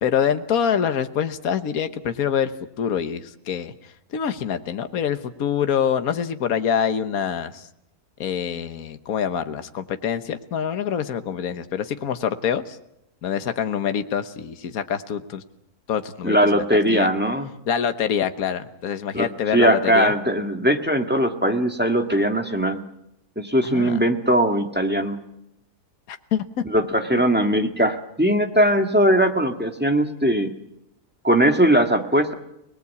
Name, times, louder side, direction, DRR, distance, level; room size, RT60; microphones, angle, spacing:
voice 1, 0.0-2.5 2.8-3.7 4.1-7.7 8.2-12.8 13.2-15.4 15.9-17.1 17.7-20.1 23.6-24.0 26.1-26.4 27.1-27.2, left 8 dB, 70° left, 9 dB, 1.6 m, -25 dB
voice 2, 16.2-17.5 19.1-19.3 19.5-22.8 23.4-25.2 26.7-30.5 31.2-32.3, right 1 dB, 5° right, 5 dB, 1.7 m, -20 dB
29.5 x 19.5 x 8.5 m, 0.84 s
omnidirectional pair, 1.6 m